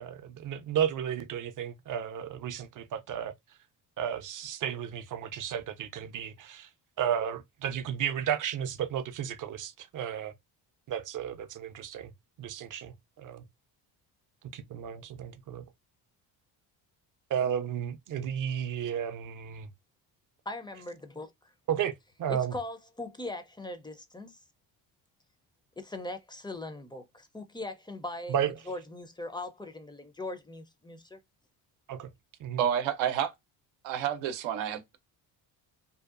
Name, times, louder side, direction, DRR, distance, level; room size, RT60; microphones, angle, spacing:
voice 1, 0.0-3.3 4.0-6.7 7.0-10.3 10.9-12.1 12.4-13.4 14.5-15.6 17.3-19.7 21.7-21.9 22.2-22.5 28.3-28.5 31.9-32.1 32.4-32.6, right 9 dB, 45° right, 0.4 m, -33 dB
voice 2, 20.5-21.3 22.3-24.4 25.8-31.2, left 2 dB, 10° left, 0.4 m, -40 dB
voice 3, 32.6-33.3 33.8-35.0, right 9 dB, 90° right, 0.6 m, -29 dB
2.7 x 2.2 x 2.4 m
cardioid pair, 85°, 45 cm